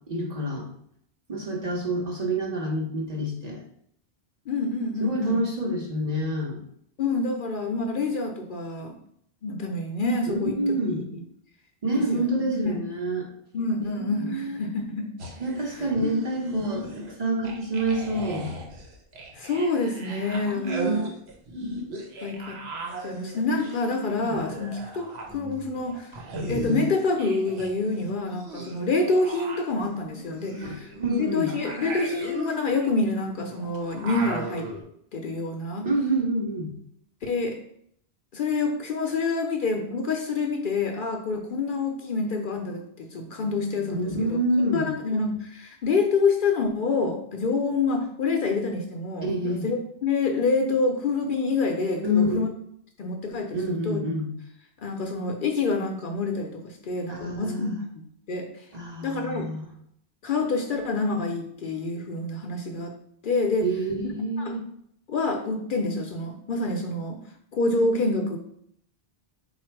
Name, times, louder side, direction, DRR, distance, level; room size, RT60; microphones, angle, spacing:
voice 1, 0.1-0.7 1.3-3.6 5.0-6.6 10.3-11.0 11.8-13.3 13.8-14.6 15.4-18.5 20.5-21.0 30.6-31.5 35.8-36.7 43.9-44.9 49.2-49.7 52.0-52.5 53.5-54.3 57.1-57.8 58.7-59.7 63.6-64.6, right 1 dB, 40° right, -1 dB, 0.8 m, -27 dB
voice 2, 4.5-5.4 7.0-9.0 9.4-10.6 10.9-11.2 12.1-12.8 13.5-15.1 19.3-21.1 22.2-22.6 23.0-26.2 26.5-30.9 31.2-34.7 35.1-35.9 37.2-37.6 38.3-44.4 44.7-52.5 53.0-54.0 54.8-57.8 58.3-58.6 59.0-59.5 60.2-62.9 63.2-63.7 64.4-64.6 65.1-67.2 67.5-68.4, left 3 dB, 60° left, 3 dB, 0.6 m, -27 dB
sound 1, 15.2-17.1 17.4-27.7 28.0-34.8, right 1 dB, 85° right, 1.1 m, -36 dB
4.1 x 2.4 x 4.4 m, 0.69 s
omnidirectional pair, 1.1 m